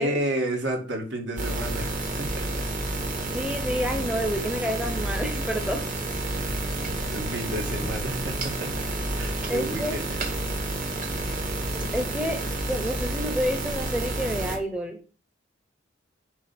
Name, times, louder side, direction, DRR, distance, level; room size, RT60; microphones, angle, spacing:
voice 1, 0.0-2.6 6.3-8.9 9.2-10.0 10.7-10.9, right 1 dB, 60° right, 0 dB, 2.6 m, -32 dB
sound 1, 1.4-14.6, right 2 dB, 40° right, 1.9 m, -30 dB
voice 2, 3.3-5.8 9.5-10.0 11.7-15.0, equal, 5° right, 4 dB, 0.9 m, -29 dB
10.0 x 3.6 x 6.1 m, 0.36 s
head